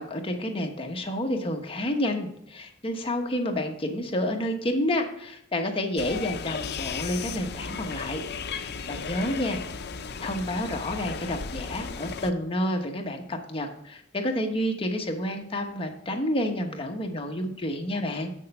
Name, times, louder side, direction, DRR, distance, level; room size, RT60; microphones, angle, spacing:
voice 1, 0.0-8.2 8.6-9.6 10.2-18.3, left 1 dB, 25° left, 3 dB, 1.1 m, -29 dB
sound 1, 6.0-12.3, left 5 dB, 50° left, 0.6 m, -35 dB
7.8 x 6.6 x 5.3 m, 0.72 s
head